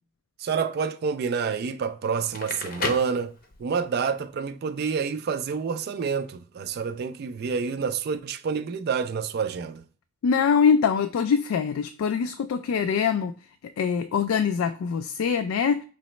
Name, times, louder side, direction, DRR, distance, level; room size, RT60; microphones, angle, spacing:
voice 1, 0.4-3.3 3.6-9.8, right 6 dB, 50° right, 0.3 m, -28 dB
Crackle, 2.2-3.9, left 3 dB, 45° left, 0.6 m, -33 dB
voice 2, 10.2-13.3 13.8-15.8, left 6 dB, 85° left, 0.3 m, -23 dB
4.8 x 3.0 x 3.1 m
head